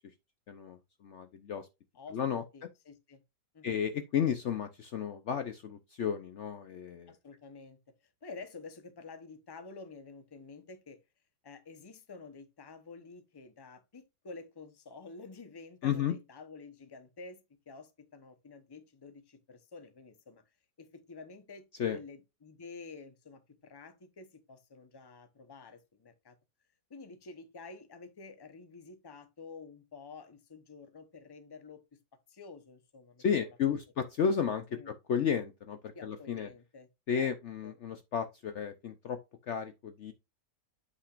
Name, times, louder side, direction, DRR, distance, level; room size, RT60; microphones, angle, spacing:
voice 1, 0.5-1.7 2.1-2.7 3.6-7.1 15.8-16.1 21.8-22.0 33.2-36.5 37.1-39.2 39.5-40.1, left 7 dB, 70° left, 0.7 m, -33 dB
voice 2, 2.5-3.2 3.5-3.7 7.1-7.8 8.2-11.0 11.4-20.4 20.8-21.6 21.9-26.4 26.9-32.0 32.3-33.6 34.7-34.9 35.9-36.9 37.1-37.3 37.6-37.7, left 4 dB, 25° left, 0.5 m, -50 dB
8.1 x 5.6 x 2.4 m
omnidirectional pair, 1.9 m